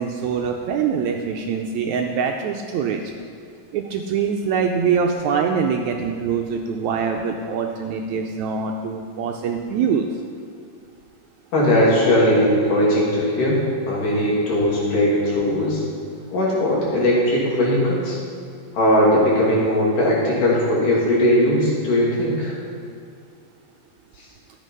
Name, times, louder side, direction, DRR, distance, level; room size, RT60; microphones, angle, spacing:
voice 1, 0.0-3.0 3.7-10.1, right 6 dB, 80° right, 2 dB, 1.7 m, -24 dB
voice 2, 11.5-15.8 16.3-18.2 18.7-22.6, left 1 dB, 75° left, -5 dB, 4.2 m, -19 dB
12.5 x 8.3 x 5.4 m, 2.3 s
omnidirectional pair, 3.8 m